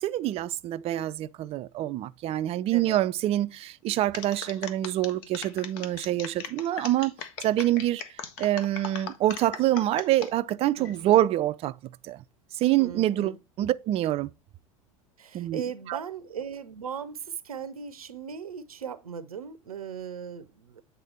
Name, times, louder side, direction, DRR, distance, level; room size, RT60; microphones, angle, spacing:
voice 1, 0.0-7.1 7.4-8.0 8.4-11.8 12.0-12.2 12.6-14.3 15.3-15.6 15.9-16.0, right 14 dB, 35° right, 0.4 m, -26 dB
sound 1, 4.1-10.3 10.8-11.2, left 7 dB, 55° left, 1.0 m, -39 dB
voice 2, 10.8-11.2 12.8-13.4 15.2-20.8, right 7 dB, 85° right, 0.6 m, -38 dB
8.2 x 3.6 x 4.3 m
figure-of-eight pair, 80°, 18 cm